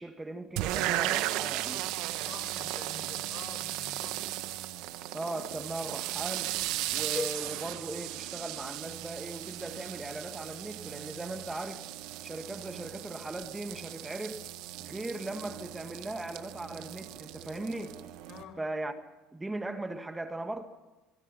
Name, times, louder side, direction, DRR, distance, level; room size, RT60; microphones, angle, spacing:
voice 1, 0.0-1.9 5.1-6.6 6.9-11.8 12.2-14.5 14.8-18.0 18.6-18.9 19.3-20.6, right 2 dB, 10° right, 1.8 m, -38 dB
sound 1, 0.6-18.4, right 15 dB, 70° right, 1.6 m, -36 dB
voice 2, 2.3-4.2 18.3-18.6, left 7 dB, 50° left, 6.0 m, -47 dB
sound 2, 7.1-9.2, left 3 dB, 20° left, 1.3 m, -42 dB
25.0 x 23.0 x 5.6 m
supercardioid pair, 85°, 0 cm